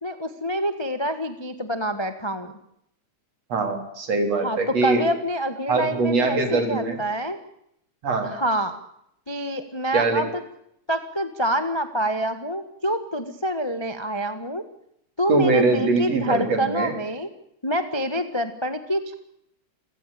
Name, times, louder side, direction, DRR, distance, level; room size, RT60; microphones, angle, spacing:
voice 1, 0.0-2.5 4.4-7.4 8.2-8.8 9.3-10.4 10.9-14.6 15.2-17.3 17.6-19.1, equal, 20° left, 9 dB, 0.7 m, -26 dB
voice 2, 3.5-5.0 5.7-7.0 8.0-8.3 9.9-10.2 15.3-16.9, right 3 dB, 60° right, 6 dB, 4.7 m, -22 dB
28.0 x 17.0 x 8.7 m, 0.77 s
omnidirectional pair, 3.4 m